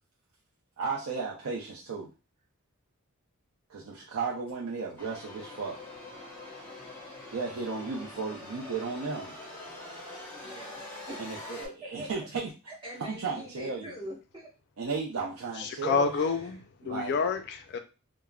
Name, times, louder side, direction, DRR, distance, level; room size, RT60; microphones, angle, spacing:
voice 1, 0.8-2.1 3.7-5.8 7.3-9.3 11.2-12.5 13.0-13.9 14.8-16.1 16.8-17.3, right 4 dB, 70° right, 0.5 m, -34 dB
sound 1, 5.0-11.7, left 1 dB, 10° left, 0.9 m, -44 dB
voice 2, 10.3-12.1 12.7-14.5 16.1-16.6, equal, 20° right, 1.2 m, -44 dB
voice 3, 15.6-17.8, left 5 dB, 50° left, 0.3 m, -29 dB
3.3 x 2.0 x 2.3 m
head